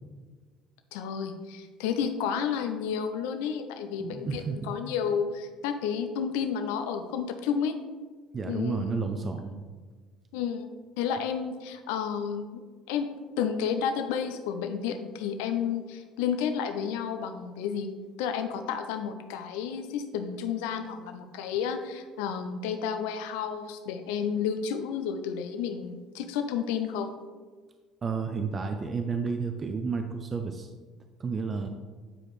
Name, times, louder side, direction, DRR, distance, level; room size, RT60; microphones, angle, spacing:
voice 1, 0.9-7.7 8.5-8.9 10.3-10.7 11.0-13.1 13.4-17.9 18.2-27.1, left 7 dB, 75° left, 8 dB, 0.4 m, -31 dB
voice 2, 4.0-4.8 8.3-9.6 28.0-30.7 31.2-31.7, right 5 dB, 35° right, 6 dB, 0.5 m, -31 dB
8.6 x 4.8 x 3.1 m, 1.4 s
hypercardioid pair, 65°, 0 cm